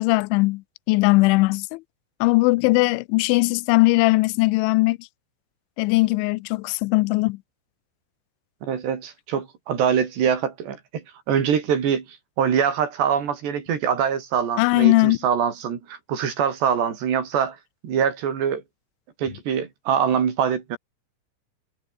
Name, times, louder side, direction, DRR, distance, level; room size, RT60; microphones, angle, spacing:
voice 1, 0.0-1.8 2.2-5.1 5.8-7.4 14.6-15.2, left 23 dB, 80° left, 2.8 m, -19 dB
voice 2, 8.6-12.1 12.4-17.6 17.8-18.6 19.2-20.8, right 7 dB, 60° right, 5.3 m, -24 dB
omnidirectional pair, 5.9 m